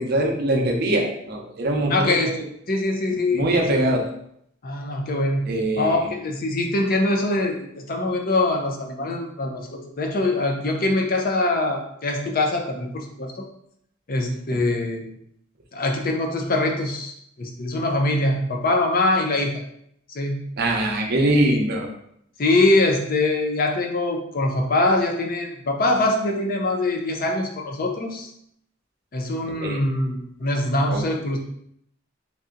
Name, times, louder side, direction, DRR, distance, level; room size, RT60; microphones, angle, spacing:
voice 1, 0.0-2.4 3.3-4.1 5.5-6.1 20.6-21.9 29.6-29.9 30.9-31.0, right 1 dB, 50° right, 1 dB, 0.7 m, -22 dB
voice 2, 1.9-2.3 2.7-3.8 4.6-5.5 5.8-13.4 14.1-15.1 15.7-19.6 20.1-20.4 22.4-28.3 29.1-31.4, left 2 dB, 45° left, 2 dB, 0.6 m, -23 dB
3.3 x 2.7 x 3.7 m, 0.71 s
head